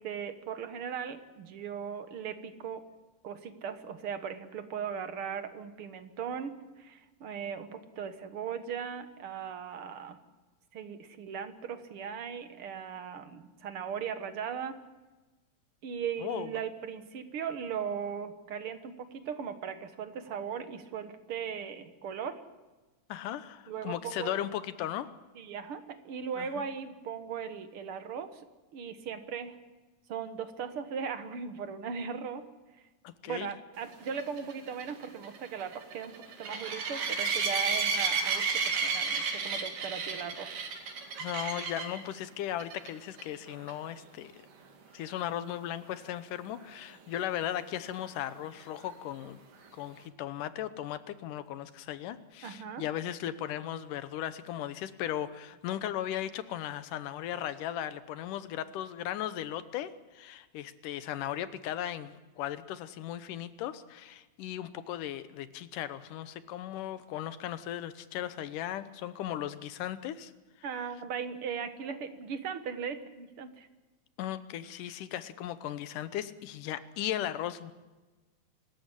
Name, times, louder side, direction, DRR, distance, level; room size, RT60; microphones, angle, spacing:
voice 1, 0.0-2.8 3.2-10.2 10.7-14.8 15.8-22.4 23.7-24.4 25.4-28.4 28.7-29.6 30.1-32.5 33.3-36.1 36.4-40.5 52.4-52.9 70.6-73.7, right 7 dB, 50° right, 9 dB, 2.0 m, -38 dB
voice 2, 23.1-25.1 26.4-26.6 33.0-33.5 41.2-44.5 44.9-49.4 49.7-70.3 74.2-77.7, left 11 dB, 85° left, 13 dB, 2.6 m, -37 dB
sound 1, 34.1-42.0 42.6-42.9 43.2-43.3 43.7-43.8 47.3-47.4, right 5 dB, 85° right, 4.0 m, -32 dB
25.0 x 14.0 x 10.0 m, 1.2 s
omnidirectional pair, 3.6 m